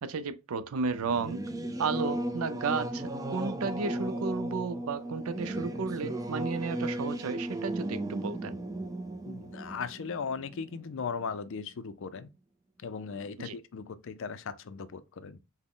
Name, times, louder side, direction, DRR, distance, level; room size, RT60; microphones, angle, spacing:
voice 1, 0.0-1.4 1.8-8.6 13.4-13.6, right 5 dB, 75° right, 0.5 m, -33 dB
Singing / Musical instrument, 0.9-11.0, right 1 dB, 15° right, 0.4 m, -35 dB
voice 2, 9.2-12.3 12.8-15.4, left 5 dB, 60° left, 0.4 m, -38 dB
6.0 x 2.1 x 3.6 m
head